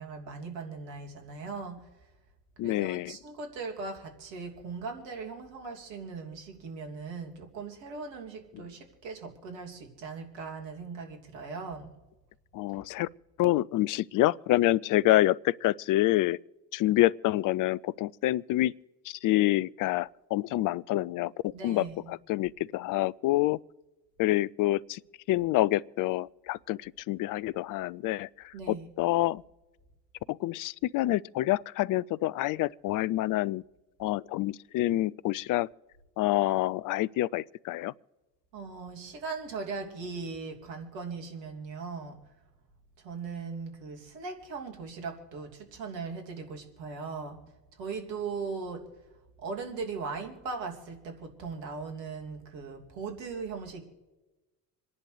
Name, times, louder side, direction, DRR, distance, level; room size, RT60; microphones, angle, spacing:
voice 1, 0.0-1.8 2.6-11.9 21.5-22.1 28.5-28.9 38.5-42.2 43.0-47.4 47.7-48.8 49.4-53.8, right 4 dB, 65° right, 2.8 m, -39 dB
voice 2, 2.6-3.2 12.5-13.1 13.4-16.4 16.7-18.7 19.1-23.6 24.2-25.0 25.3-29.4 30.3-33.6 34.0-35.7 36.2-37.9, left 16 dB, 45° left, 0.5 m, -27 dB
27.0 x 10.5 x 3.3 m
hypercardioid pair, 60°, 48 cm